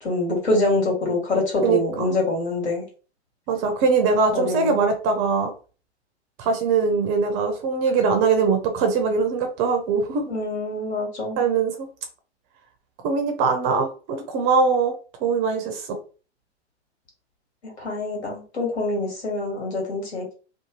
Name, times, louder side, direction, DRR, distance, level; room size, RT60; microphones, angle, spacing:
voice 1, 0.0-2.9 4.3-4.9 10.3-11.4 17.6-20.3, left 2 dB, 70° left, 0 dB, 1.5 m, -25 dB
voice 2, 1.6-2.1 3.5-5.5 6.4-10.2 11.4-11.9 13.0-14.9 15.2-16.0, right 5 dB, 30° right, 6 dB, 0.5 m, -22 dB
2.6 x 2.3 x 2.9 m, 0.37 s
hypercardioid pair, 110°, 34 cm